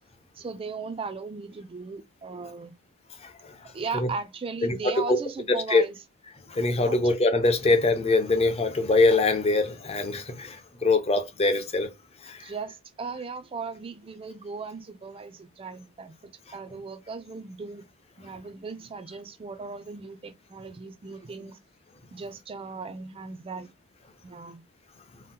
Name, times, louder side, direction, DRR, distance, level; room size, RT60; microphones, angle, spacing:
voice 1, 0.3-2.8 3.6-6.0 6.8-7.0 12.4-17.9 18.2-21.6 22.1-23.7 24.2-24.6, right 4 dB, 25° right, 0.4 m, -37 dB
voice 2, 3.2-3.6 3.9-4.1 4.6-5.2 5.5-5.8 6.5-11.9 12.2-12.4, left 3 dB, 25° left, 0.5 m, -23 dB
2.8 x 2.1 x 3.6 m
head